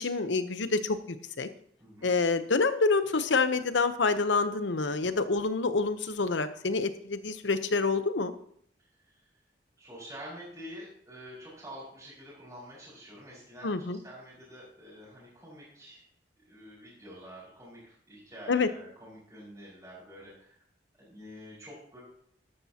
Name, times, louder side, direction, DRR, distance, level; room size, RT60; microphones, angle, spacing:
voice 1, 0.0-1.5 2.0-8.3 13.6-14.0 18.5-18.7, left 4 dB, 90° left, 11 dB, 0.9 m, -27 dB
voice 2, 1.8-2.2 9.0-9.2 9.8-16.0 16.4-20.7 21.0-22.0, equal, 15° right, -9 dB, 5.1 m, -47 dB
13.0 x 12.0 x 2.9 m, 0.64 s
head